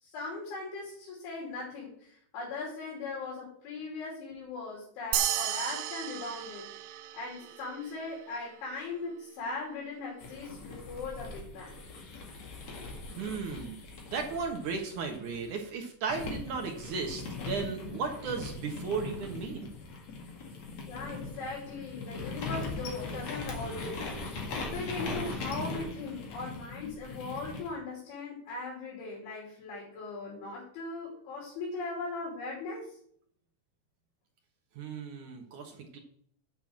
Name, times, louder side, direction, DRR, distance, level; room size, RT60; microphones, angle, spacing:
voice 1, 0.0-6.7 7.1-11.8 20.9-33.0, left 3 dB, 75° left, -5 dB, 5.3 m, -39 dB
sound 1, 5.1-7.9, right 12 dB, 85° right, 2.5 m, -34 dB
sound 2, 10.2-15.6 16.1-27.7, left 3 dB, 50° left, 2.3 m, -40 dB
voice 2, 13.2-13.8 14.1-19.7 34.8-36.0, right 5 dB, 70° right, 2 dB, 1.9 m, -35 dB
9.5 x 5.6 x 7.6 m, 0.63 s
omnidirectional pair, 5.5 m